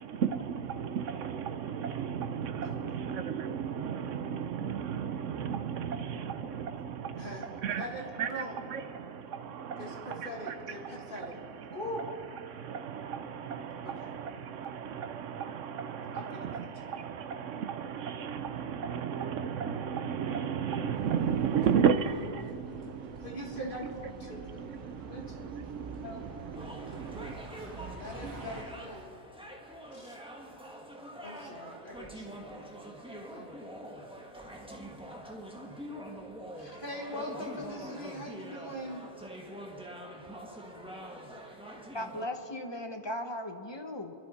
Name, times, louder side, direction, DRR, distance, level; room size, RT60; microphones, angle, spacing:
voice 1, 0.0-27.4, right 7 dB, 75° right, 1.1 m, -34 dB
voice 2, 7.2-7.5 7.8-8.5 9.8-11.4 11.7-12.0 13.9-14.1 16.1-16.7 23.2-24.4 25.1-25.5 26.0-26.2 28.0-29.2 29.9-30.2 31.2-32.8 33.3-33.7 36.5-39.1, left 1 dB, 40° left, 1.9 m, -42 dB
sound 1, 20.9-28.6, right 3 dB, 90° right, 2.0 m, -47 dB
sound 2, 26.5-42.3, right 1 dB, 5° right, 1.3 m, -45 dB
voice 3, 41.9-44.1, left 1 dB, 25° left, 0.9 m, -37 dB
26.5 x 12.0 x 4.2 m
omnidirectional pair, 1.3 m